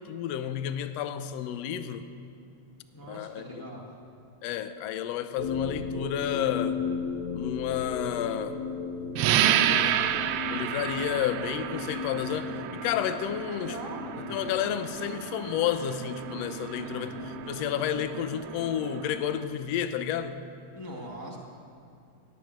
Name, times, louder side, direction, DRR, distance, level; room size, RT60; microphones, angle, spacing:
voice 1, 0.0-2.1 3.1-3.7 4.4-6.8 7.3-8.6 9.6-10.0 10.5-13.8 14.3-20.4, left 10 dB, 85° left, 11 dB, 1.5 m, -31 dB
voice 2, 2.9-4.0 9.5-10.2 13.5-14.4 16.8-17.3 20.7-21.4, equal, 30° left, -2 dB, 0.4 m, -42 dB
sound 1, 5.4-20.3, left 5 dB, 50° left, 1.8 m, -37 dB
sound 2, 9.2-19.5, right 10 dB, 85° right, 1.5 m, -31 dB
17.5 x 8.0 x 9.1 m, 2.4 s
omnidirectional pair, 3.6 m